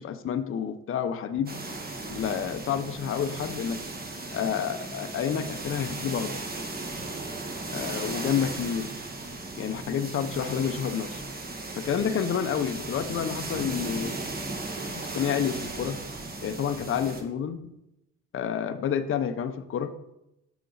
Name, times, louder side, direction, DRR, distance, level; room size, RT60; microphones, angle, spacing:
voice 1, 0.0-1.6 2.1-3.8 4.3-6.4 7.7-9.0 9.6-11.2 11.7-14.2 14.8-16.0 16.4-17.6 18.3-19.9, left 8 dB, 45° left, 9 dB, 0.6 m, -29 dB
sound 1, 1.5-17.2, right 2 dB, 30° right, 1.1 m, -36 dB
6.8 x 5.1 x 3.8 m, 0.87 s
cardioid pair, 90°, 30 cm